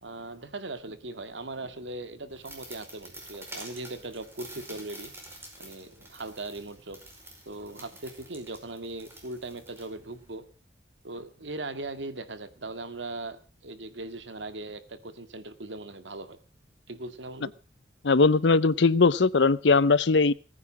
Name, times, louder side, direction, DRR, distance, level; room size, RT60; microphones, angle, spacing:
voice 1, 0.0-5.1 5.6-7.0 7.5-10.4 11.0-16.4 16.9-17.5, right 2 dB, 80° right, 11 dB, 2.0 m, -39 dB
sound 1, 2.3-10.4, right 1 dB, 15° right, 5.1 m, -48 dB
voice 2, 18.0-20.3, left 4 dB, 70° left, 20 dB, 0.7 m, -20 dB
19.5 x 9.9 x 6.2 m, 0.36 s
head